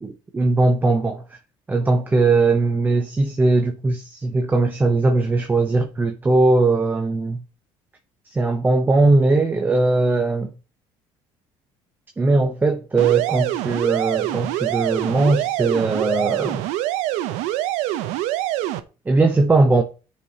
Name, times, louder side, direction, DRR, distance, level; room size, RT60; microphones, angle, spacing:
voice 1, 0.0-1.2 1.7-7.4 8.4-10.5 12.2-16.6 19.1-19.8, right 3 dB, 15° right, 0.7 m, -19 dB
sound 1, 13.0-18.8, right 14 dB, 80° right, 0.6 m, -25 dB
12.0 x 4.9 x 2.8 m
cardioid pair, 115°, 12 cm